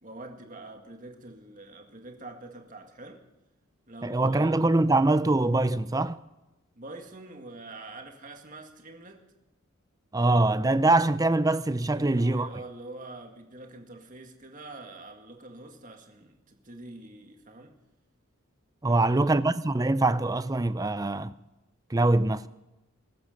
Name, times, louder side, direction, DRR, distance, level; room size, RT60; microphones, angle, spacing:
voice 1, 0.0-3.2 3.9-4.6 6.8-9.2 11.9-17.8 18.9-19.3, right 2 dB, 40° right, 2.0 m, -45 dB
voice 2, 4.0-6.2 10.1-12.5 18.8-21.3 21.9-22.5, right 2 dB, 15° right, 0.5 m, -23 dB
21.5 x 12.0 x 5.3 m
head